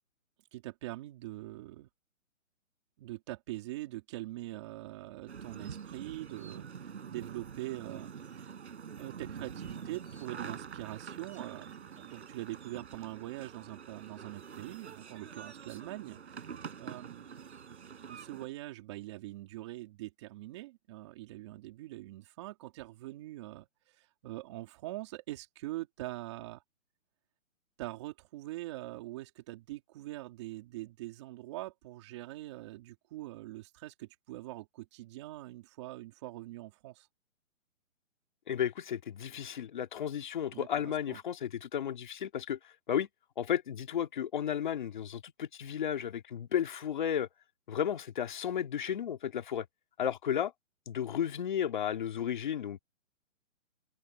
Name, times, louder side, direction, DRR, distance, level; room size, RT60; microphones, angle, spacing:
voice 1, 0.5-1.9 3.0-8.5 9.0-16.5 16.8-17.3 18.1-23.7 24.0-26.6 27.8-37.1 40.5-41.2, right 17 dB, 20° right, 3.5 m, -43 dB
sound 1, 5.3-18.5, right 7 dB, 55° right, 7.1 m, -46 dB
voice 2, 38.5-43.1 43.4-47.3 47.7-49.7 50.0-50.5 50.9-52.8, left 9 dB, 35° left, 2.3 m, -33 dB
open air
hypercardioid pair, 175°, 40 cm